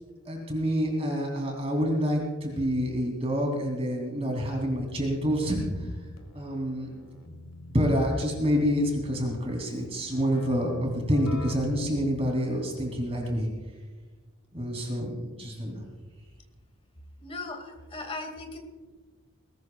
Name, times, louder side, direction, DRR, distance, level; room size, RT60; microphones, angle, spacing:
voice 1, 0.2-6.0 6.3-6.9 7.3-7.4 7.7-13.5 14.5-15.8, equal, 30° right, 0 dB, 3.0 m, -27 dB
Keyboard (musical), 4.8-13.2, left 3 dB, 75° left, 1.4 m, -45 dB
voice 2, 17.2-18.6, left 3 dB, 25° left, 4 dB, 2.2 m, -38 dB
20.5 x 18.0 x 2.4 m, 1.4 s
head